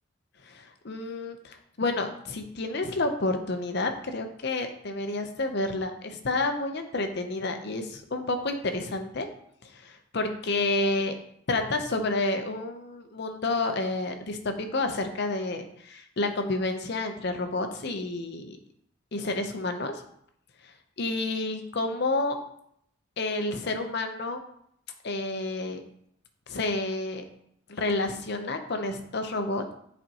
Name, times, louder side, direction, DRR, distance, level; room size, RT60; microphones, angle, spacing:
voice 1, 0.5-9.3 9.6-11.1 11.5-18.6 19.1-20.0 21.0-22.4 23.2-24.4 25.0-25.8 26.5-27.2 27.7-29.6, left 2 dB, 50° left, 6 dB, 0.7 m, -30 dB
7.8 x 4.3 x 2.9 m, 0.70 s
head